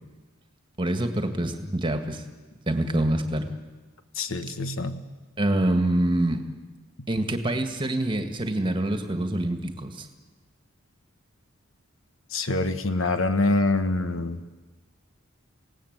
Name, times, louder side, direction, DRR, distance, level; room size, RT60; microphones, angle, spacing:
voice 1, 0.8-2.2 2.7-3.5 5.4-6.4 7.1-10.1, right 1 dB, 25° right, 7 dB, 1.9 m, -25 dB
voice 2, 4.1-5.0 12.3-14.4, left 2 dB, 70° left, 9 dB, 1.4 m, -25 dB
28.0 x 17.5 x 8.2 m, 1.2 s
head